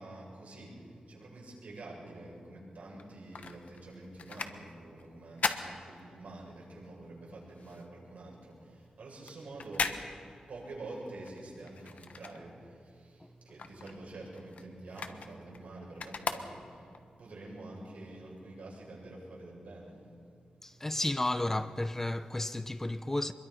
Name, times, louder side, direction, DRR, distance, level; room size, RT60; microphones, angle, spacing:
voice 1, 0.0-20.9, right 2 dB, 75° right, 7.9 m, -47 dB
sound 1, 2.9-6.6 6.9-12.9 13.2-17.0 17.5-17.6, left 5 dB, 70° left, 1.2 m, -39 dB
voice 2, 20.6-23.3, left 1 dB, 15° left, 0.6 m, -32 dB
26.0 x 22.5 x 5.7 m
wide cardioid pair, 150°, 2 cm